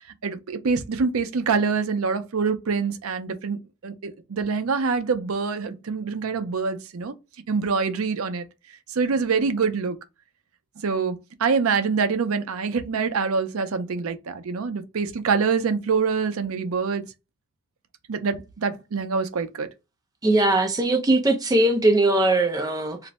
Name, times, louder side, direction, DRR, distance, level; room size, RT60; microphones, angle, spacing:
voice 1, 0.2-7.1 7.5-8.4 8.9-10.0 10.8-17.0 18.1-19.7, right 5 dB, 85° right, 0.5 m, -25 dB
voice 2, 20.2-23.1, right 2 dB, 15° right, 0.5 m, -20 dB
2.5 x 2.1 x 4.0 m
head